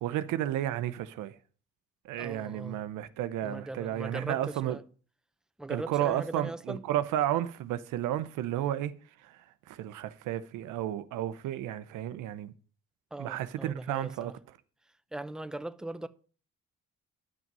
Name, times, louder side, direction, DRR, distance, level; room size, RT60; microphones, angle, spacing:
voice 1, 0.0-1.4 2.0-4.8 5.7-8.9 9.2-9.4 9.7-12.5 13.2-14.4, right 12 dB, 90° right, 0.7 m, -32 dB
voice 2, 2.2-2.8 3.4-4.8 5.6-6.8 13.1-14.3 15.1-16.1, right 2 dB, ahead, 0.7 m, -39 dB
10.5 x 6.1 x 5.4 m
cardioid pair, 90°, 30 cm